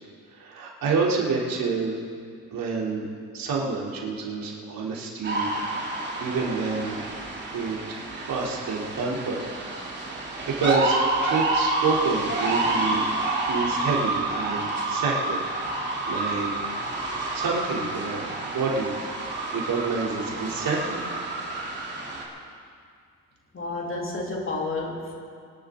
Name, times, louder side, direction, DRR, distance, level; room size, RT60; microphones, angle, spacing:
voice 1, 0.3-2.0 2.5-3.1 3.3-5.5 5.8-7.0 7.5-9.4 10.0-13.1 13.4-16.5 17.3-21.0, right 4 dB, 65° right, -4 dB, 3.3 m, -28 dB
sound 1, 5.2-22.2, right 2 dB, 30° right, 2.9 m, -29 dB
voice 2, 23.5-25.3, left 2 dB, 35° left, -1 dB, 2.9 m, -31 dB
24.5 x 11.0 x 3.8 m, 2.2 s
cardioid pair, 100°, 36 cm